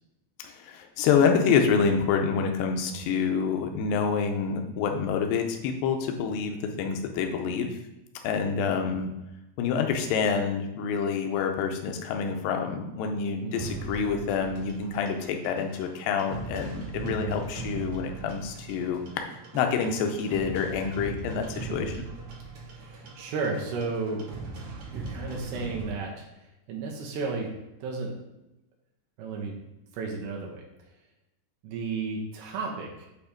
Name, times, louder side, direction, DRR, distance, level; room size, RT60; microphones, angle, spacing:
voice 1, 0.4-7.8 8.2-9.1 9.6-19.3 19.5-22.0, left 6 dB, 85° left, 4 dB, 2.0 m, -27 dB
voice 2, 8.5-8.9 13.4-13.8 17.0-17.4 21.7-21.9 22.7-24.2 24.9-26.3 26.7-27.5 27.8-28.1 29.2-29.5 29.9-30.6 31.6-33.1, right 4 dB, 75° right, 0 dB, 2.9 m, -33 dB
sound 1, 13.6-25.9, right 3 dB, 55° right, 2.5 m, -40 dB
8.4 x 2.9 x 5.0 m, 0.93 s
omnidirectional pair, 4.9 m